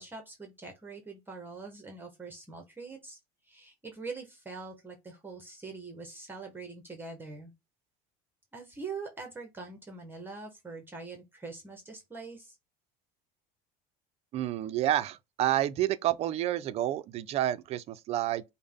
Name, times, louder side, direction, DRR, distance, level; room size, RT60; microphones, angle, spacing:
voice 1, 0.0-3.2 3.4-7.5 8.5-12.5, right 4 dB, 10° right, 0.8 m, -43 dB
voice 2, 14.3-18.4, right 13 dB, 35° right, 0.4 m, -29 dB
5.3 x 2.1 x 3.5 m
cardioid pair, 160°, 17 cm